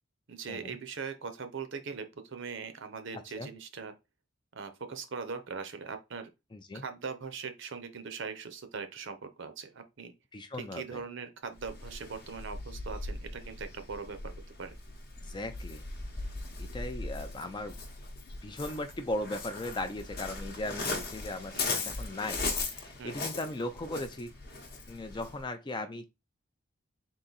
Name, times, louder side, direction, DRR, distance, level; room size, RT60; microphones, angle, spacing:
voice 1, 0.3-3.9 4.5-6.3 6.7-10.1 10.6-14.3 14.6-14.8 21.5-22.0 23.0-23.2, right 5 dB, 55° right, 0.6 m, -41 dB
voice 2, 3.1-3.5 6.5-6.8 10.3-11.0 15.2-15.8 16.6-17.7 18.4-24.3 24.9-26.1, left 1 dB, 20° left, 0.4 m, -38 dB
Waves surf, 11.6-25.4, left 3 dB, 45° left, 0.8 m, -39 dB
3.9 x 2.6 x 3.9 m
head